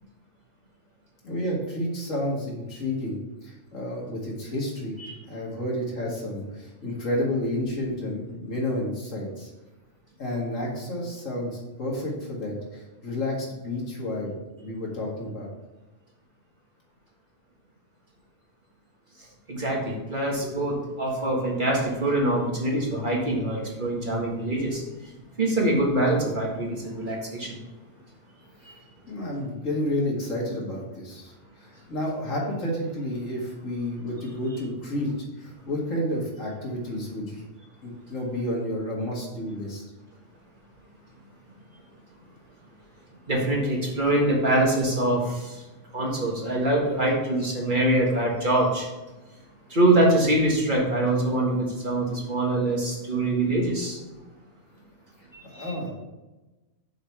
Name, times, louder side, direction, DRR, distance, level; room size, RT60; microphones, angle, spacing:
voice 1, 1.2-5.0 5.3-9.5 10.2-15.5 29.1-31.3 31.6-35.1 35.4-37.4 37.8-39.8 55.2-55.9, left 1 dB, 80° left, -3 dB, 2.4 m, -30 dB
voice 2, 19.5-24.8 25.4-27.6 43.3-45.6 45.9-48.9 49.7-54.0 55.3-55.7, right 1 dB, 40° right, -2 dB, 1.8 m, -24 dB
6.5 x 4.8 x 5.8 m, 1.1 s
omnidirectional pair, 1.3 m